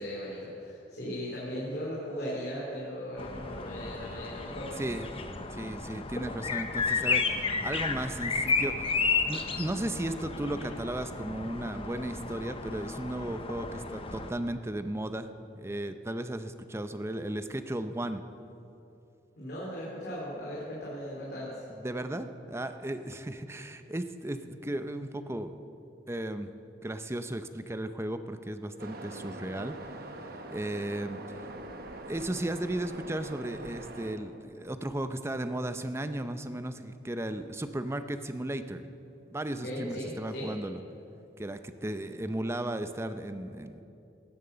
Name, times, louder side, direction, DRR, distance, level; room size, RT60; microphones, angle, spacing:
voice 1, 0.0-4.8 19.4-21.6 39.5-40.5, equal, 60° left, -6 dB, 2.8 m, -37 dB
sound 1, 3.2-14.3, left 4 dB, 30° left, 0.8 m, -33 dB
voice 2, 4.8-5.1 5.5-9.0 9.3-15.3 15.6-18.2 21.8-25.5 26.1-26.5 26.8-31.5 32.0-38.8 39.3-40.8 41.4-43.8, right 1 dB, 15° right, 9 dB, 0.6 m, -35 dB
Waves surf, 28.8-34.1, right 2 dB, 60° right, 1.2 m, -43 dB
16.5 x 8.9 x 6.8 m, 2.8 s
head